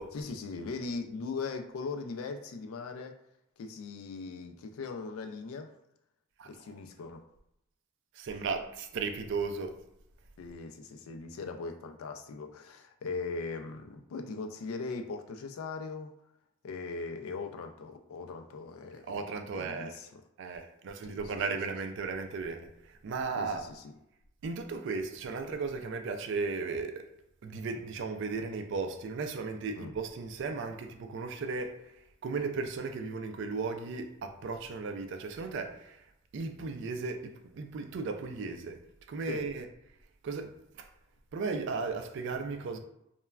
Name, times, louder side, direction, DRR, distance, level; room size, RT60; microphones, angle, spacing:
voice 1, 0.1-3.2 3.6-5.7 6.4-7.2 10.4-16.1 16.6-19.2 19.5-20.2 21.0-21.2 23.4-23.8 29.8-29.9 39.3-39.5, left 4 dB, 80° left, 0.4 m, -39 dB
voice 2, 8.2-9.8 19.1-19.9 20.4-23.6 24.4-27.1 27.4-31.9 32.2-36.0 36.3-38.8 39.1-39.7 40.2-40.9 41.3-42.8, right 4 dB, 60° right, 0.3 m, -36 dB
3.1 x 2.2 x 2.3 m
head